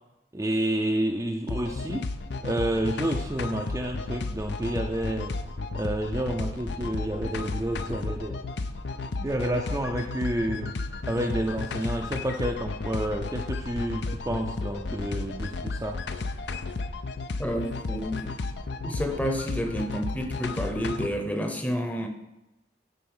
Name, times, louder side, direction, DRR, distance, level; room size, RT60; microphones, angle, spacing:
voice 1, 0.3-2.0 2.4-5.3 5.7-8.4 9.2-10.7 11.0-16.0, right 1 dB, 15° right, 1 dB, 0.5 m, -29 dB
sound 1, 1.5-21.1, left 3 dB, 60° left, 0.5 m, -33 dB
voice 2, 17.4-18.3 18.8-22.1, equal, 10° left, 4 dB, 0.8 m, -30 dB
10.5 x 4.1 x 5.5 m, 0.98 s
head